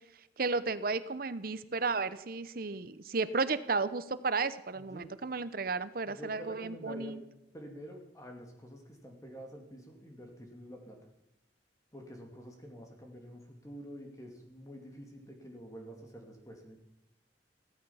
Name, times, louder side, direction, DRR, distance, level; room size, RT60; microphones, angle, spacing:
voice 1, 0.4-7.2, right 4 dB, 55° right, 14 dB, 0.8 m, -33 dB
voice 2, 4.7-5.1 6.0-7.2 7.5-11.0 11.9-16.8, equal, 20° left, 2 dB, 2.6 m, -48 dB
16.0 x 14.0 x 5.7 m, 0.89 s
head